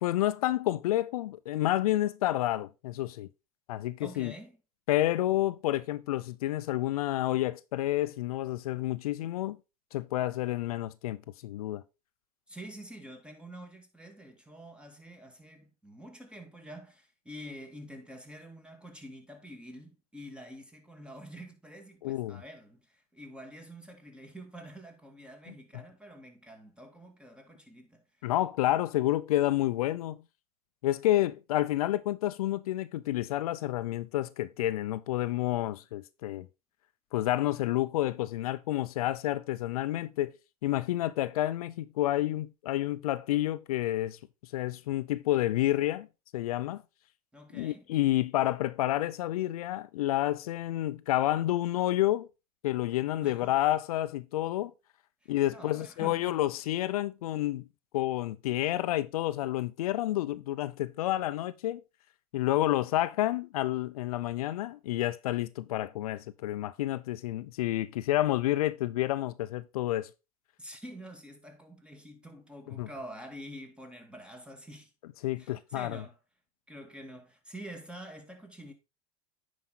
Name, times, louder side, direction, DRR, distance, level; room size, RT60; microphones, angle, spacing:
voice 1, 0.0-3.3 3.7-4.3 4.9-9.6 9.9-11.8 22.0-22.4 28.2-30.2 30.8-36.5 37.1-40.3 40.6-44.2 44.5-46.1 46.3-46.8 47.5-52.3 52.6-54.7 55.3-57.6 57.9-61.8 62.3-70.1 72.8-72.9 75.2-76.0, left 14 dB, 80° left, 0.6 m, -29 dB
voice 2, 4.0-4.6 12.5-28.3 47.3-47.9 53.2-53.6 55.2-56.4 70.6-74.9 75.4-76.2 76.7-78.7, equal, 5° right, 2.2 m, -47 dB
9.3 x 5.1 x 4.0 m
hypercardioid pair, 95°, 19 cm